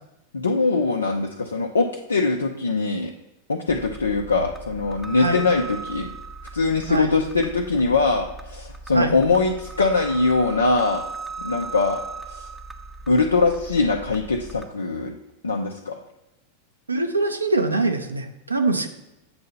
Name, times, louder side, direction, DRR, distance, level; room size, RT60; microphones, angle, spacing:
voice 1, 0.3-3.1 3.5-6.1 6.5-11.0 11.4-12.0 12.3-12.5 13.1-15.1 15.4-16.0, left 3 dB, 75° left, 1 dB, 0.5 m, -22 dB
sound 1, 3.7-14.6, right 4 dB, ahead, 0.5 m, -38 dB
voice 2, 16.9-18.9, right 2 dB, 80° right, 6 dB, 0.6 m, -23 dB
7.7 x 2.8 x 5.6 m, 0.93 s
figure-of-eight pair, 90°, 0 cm